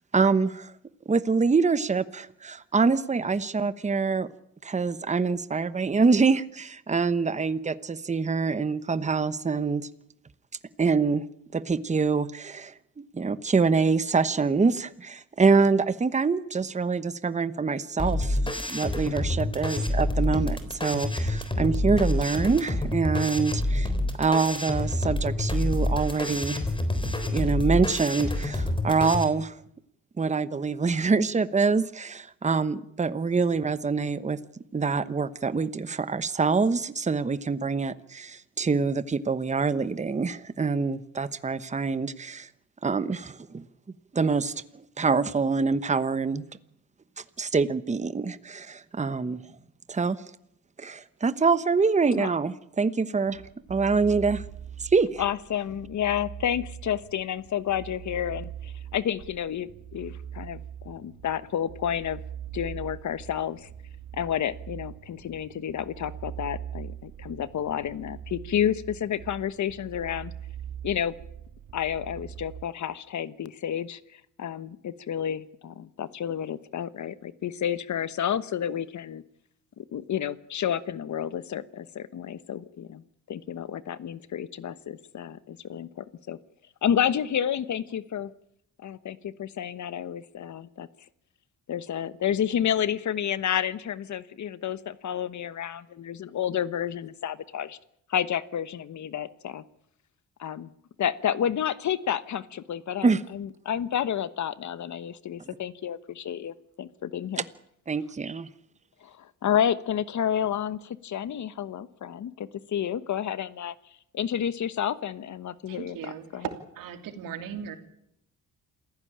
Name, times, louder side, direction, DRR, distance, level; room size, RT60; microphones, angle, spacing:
voice 1, 0.1-0.7 1.1-4.3 4.6-9.9 10.8-11.2 11.5-18.4 18.7-23.9 24.2-26.6 27.3-29.5 30.2-34.4 34.7-42.5 42.8-43.6 44.1-46.4 47.4-49.4 49.9-50.2 50.8-53.4 53.7-54.4 54.8-55.2 103.0-103.2 107.9-108.5, right 4 dB, 20° right, 14 dB, 1.0 m, -25 dB
sound 1, 18.0-29.2, left 1 dB, 15° left, 3.7 m, -27 dB
sound 2, 53.3-72.6, right 9 dB, 70° right, 2.1 m, -42 dB
voice 2, 55.2-62.2 62.5-63.7 64.1-70.3 70.8-71.1 71.7-74.0 74.4-79.2 79.8-86.4 86.8-88.3 88.8-90.9 91.7-97.8 98.1-99.6 100.4-100.7 101.0-107.4 109.0-113.7 114.1-116.4, left 9 dB, 60° left, 15 dB, 1.2 m, -30 dB
voice 3, 115.7-116.5 116.7-117.8, right 9 dB, 90° right, 6 dB, 3.1 m, -37 dB
27.5 x 15.5 x 8.8 m, 0.75 s
cardioid pair, 100°, 33 cm